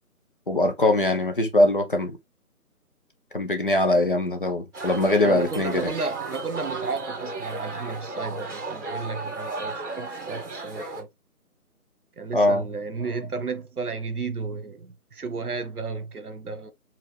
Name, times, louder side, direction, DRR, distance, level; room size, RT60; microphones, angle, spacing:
voice 1, 0.5-2.2 3.3-5.9 12.3-12.6, left 1 dB, 35° left, 0.8 m, -22 dB
sound 1, 4.7-11.0, right 3 dB, 50° right, 2.1 m, -34 dB
voice 2, 5.2-11.1 12.2-16.7, right 4 dB, 75° right, 1.2 m, -33 dB
4.8 x 2.8 x 3.4 m
figure-of-eight pair, 165°, 45 cm